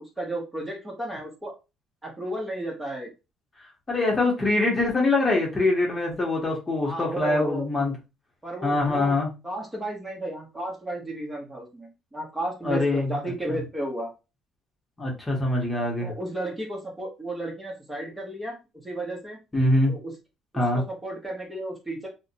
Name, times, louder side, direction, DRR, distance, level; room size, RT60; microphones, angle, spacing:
voice 1, 0.2-1.5 2.0-3.1 6.8-7.7 8.4-9.1 9.4-14.1 16.0-18.6 18.8-19.4 19.9-20.1 20.5-22.1, right 1 dB, 10° right, 0 dB, 0.9 m, -33 dB
voice 2, 3.9-7.9 8.6-9.3 12.6-13.1 15.0-16.1 19.5-19.9 20.5-20.8, left 2 dB, 25° left, -1 dB, 0.9 m, -23 dB
2.5 x 2.1 x 2.6 m, 0.27 s
cardioid pair, 100°, 0 cm